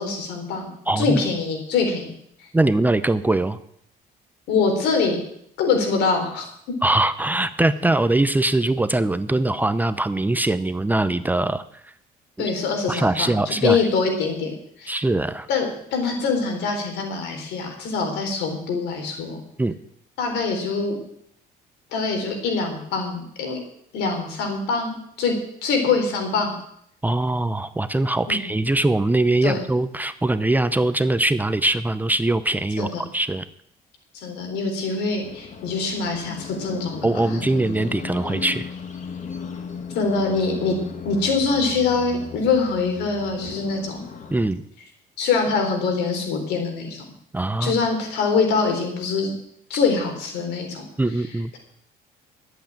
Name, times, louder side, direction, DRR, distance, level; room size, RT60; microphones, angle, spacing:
voice 1, 0.0-0.7 1.0-2.1 4.5-5.2 5.6-6.5 12.4-15.0 15.5-19.4 20.2-20.9 21.9-23.6 23.9-25.3 25.6-26.5 28.3-28.4 29.4-29.6 32.8-32.9 34.1-37.1 39.9-40.8 41.0-44.0 45.2-47.0 47.6-49.3 49.7-50.8, left 4 dB, 85° left, 4 dB, 3.8 m, -24 dB
voice 2, 0.9-1.2 2.5-3.6 6.8-11.6 12.4-12.5 12.9-13.8 14.9-15.5 19.6-19.7 27.0-33.5 37.0-38.7 44.3-44.6 47.3-47.8 51.0-51.5, right 2 dB, 10° right, 12 dB, 0.6 m, -22 dB
sound 1, 35.2-44.5, left 5 dB, 45° left, 1.8 m, -36 dB
11.5 x 8.1 x 8.7 m, 0.70 s
cardioid pair, 110°, 17 cm